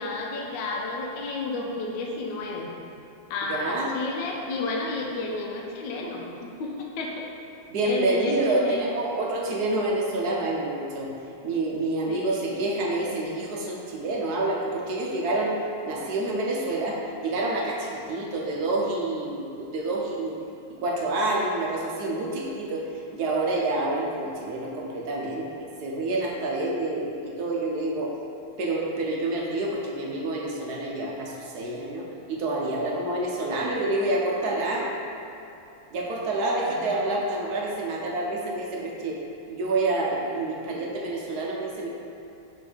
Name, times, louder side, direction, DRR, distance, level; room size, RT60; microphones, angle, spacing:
voice 1, 0.0-2.7 3.3-7.3 7.8-8.8 12.1-12.4 36.8-36.9, left 3 dB, 75° left, 0 dB, 1.3 m, -31 dB
voice 2, 3.5-3.9 7.7-11.1 11.4-15.5 15.8-20.3 20.7-22.8 23.1-28.1 28.6-34.9 35.9-39.2 39.5-41.9, right 2 dB, 60° right, -3 dB, 1.1 m, -28 dB
6.1 x 3.3 x 5.0 m, 2.8 s
omnidirectional pair, 2.2 m